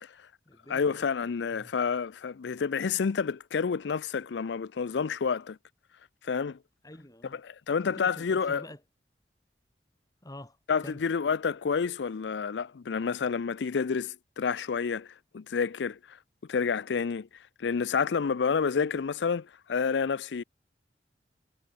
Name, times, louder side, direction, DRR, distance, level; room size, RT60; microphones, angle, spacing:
voice 1, 0.1-1.0 1.5-1.7 6.8-7.4 7.8-8.8 10.2-11.0, left 1 dB, 20° left, 3.5 m, -47 dB
voice 2, 0.7-5.6 6.2-6.6 7.4-8.6 10.7-16.2 16.5-17.3 17.6-20.4, left 5 dB, 75° left, 0.5 m, -29 dB
head